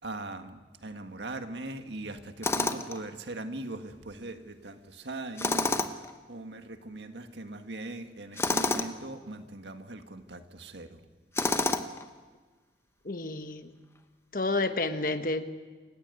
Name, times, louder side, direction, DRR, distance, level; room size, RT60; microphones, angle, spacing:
voice 1, 0.0-11.1, right 2 dB, 90° right, 7 dB, 1.7 m, -40 dB
Tools, 2.4-3.0 5.4-6.1 8.4-8.9 11.3-12.0, left 2 dB, 15° left, 0.9 m, -28 dB
voice 2, 13.0-13.7 14.3-15.4, left 2 dB, 50° left, 9 dB, 1.3 m, -30 dB
28.0 x 15.5 x 9.2 m, 1.4 s
head